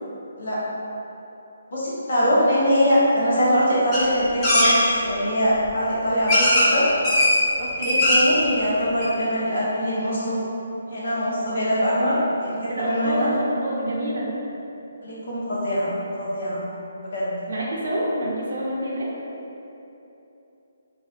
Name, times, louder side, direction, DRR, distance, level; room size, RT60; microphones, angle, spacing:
voice 1, 1.7-6.9 7.6-10.4 10.9-13.3 15.0-16.6 17.0-17.4, equal, 50° left, -8 dB, 0.9 m, -23 dB
sound 1, 3.9-4.0 4.4-4.7 5.6-5.7 6.3-6.7 7.0-7.3 7.7-8.3 8.7-8.8 9.0-9.1, left 1 dB, 15° left, 0.5 m, -18 dB
voice 2, 12.7-14.3 17.5-19.1, right 1 dB, 60° right, -5 dB, 0.7 m, -27 dB
3.9 x 2.6 x 2.4 m, 3.0 s
hypercardioid pair, 175°, 0 cm